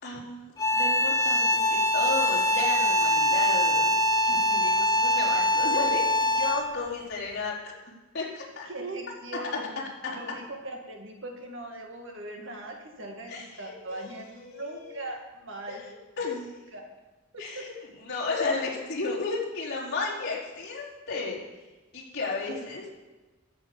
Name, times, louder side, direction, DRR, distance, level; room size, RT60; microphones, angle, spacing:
voice 1, 0.0-4.0 4.2-7.7 8.1-8.7 10.0-10.2 13.3-15.1 15.7-15.9 16.2-16.5 17.4-21.4 21.9-22.9, left 3 dB, 55° left, -6 dB, 4.2 m, -34 dB
sound 1, 0.6-6.8, left 1 dB, 20° left, 1.0 m, -23 dB
voice 2, 8.7-9.8 10.1-15.8 16.7-16.8 17.3-17.7 22.4-22.5, right 2 dB, 65° right, 1 dB, 2.2 m, -40 dB
13.5 x 6.9 x 7.2 m, 1.2 s
head